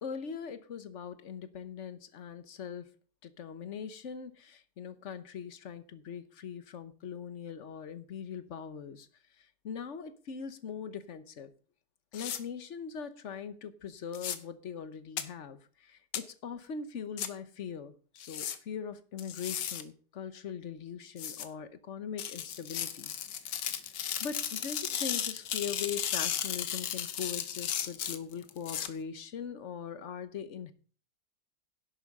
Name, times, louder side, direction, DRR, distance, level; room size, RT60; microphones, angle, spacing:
voice 1, 0.0-2.9 3.2-9.1 9.4-11.5 12.1-23.1 24.2-30.7, left 7 dB, 50° left, 13 dB, 1.2 m, -41 dB
sound 1, 12.1-12.4 14.1-14.4 15.2-15.3 16.1-16.2 17.2-17.3 18.2-18.6 19.2-19.8 21.2-21.4 22.2-28.9, left 9 dB, 85° left, 1.6 m, -35 dB
11.0 x 8.5 x 5.4 m, 0.42 s
omnidirectional pair, 1.8 m